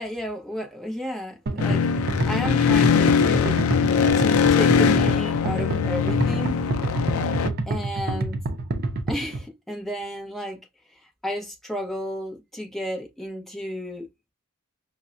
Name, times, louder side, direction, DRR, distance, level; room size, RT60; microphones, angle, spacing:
voice 1, 0.0-3.6 4.1-6.6 7.7-8.4 9.1-10.6 11.2-14.1, equal, ahead, 0.7 m, -32 dB
sound 1, 1.5-9.4, right 2 dB, 45° right, 0.5 m, -27 dB
sound 2, 1.6-7.5, left 6 dB, 90° left, 0.4 m, -21 dB
5.3 x 2.0 x 2.4 m
head